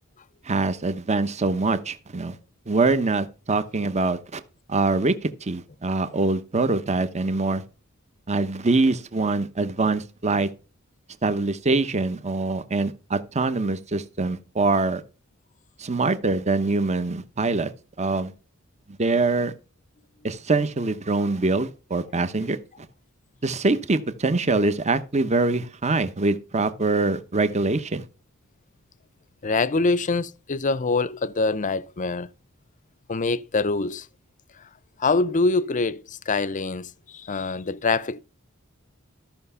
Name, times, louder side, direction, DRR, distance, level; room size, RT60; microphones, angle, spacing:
voice 1, 0.5-2.4 2.7-4.4 4.7-7.6 8.3-10.5 11.2-15.0 15.8-17.7 18.0-18.3 19.0-19.5 20.2-22.6 23.4-28.0, right 3 dB, 35° right, 0.9 m, -24 dB
voice 2, 29.4-32.3 33.1-34.1 35.0-38.2, left 3 dB, 35° left, 0.6 m, -24 dB
13.5 x 5.8 x 5.6 m
head